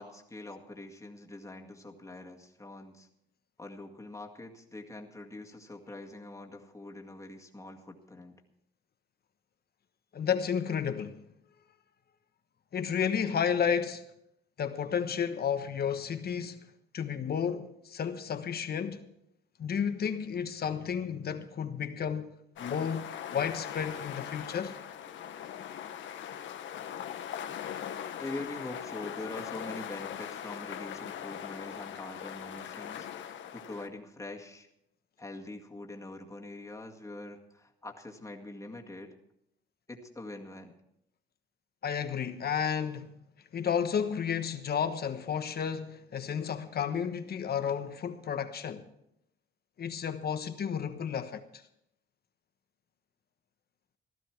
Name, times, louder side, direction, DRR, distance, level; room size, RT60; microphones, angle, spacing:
voice 1, 0.0-3.1 3.6-8.4 28.2-34.7 35.2-39.1 39.9-40.8, left 2 dB, 15° left, 2.0 m, -44 dB
voice 2, 10.1-11.2 12.7-14.0 14.6-19.0 19.6-22.3 22.6-24.8 41.8-43.1 43.5-48.9 49.8-51.6, left 7 dB, 50° left, 1.2 m, -32 dB
sound 1, 22.6-33.9, left 9 dB, 70° left, 1.1 m, -40 dB
16.0 x 13.0 x 4.6 m
cardioid pair, 90°, 20 cm